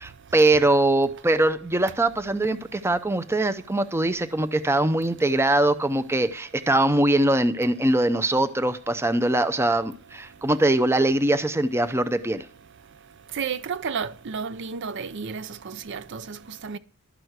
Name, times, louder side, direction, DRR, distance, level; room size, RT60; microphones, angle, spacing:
voice 1, 0.0-12.5, right 2 dB, 10° right, 0.6 m, -22 dB
voice 2, 13.3-16.8, right 6 dB, 55° right, 0.5 m, -32 dB
12.5 x 6.1 x 8.0 m
head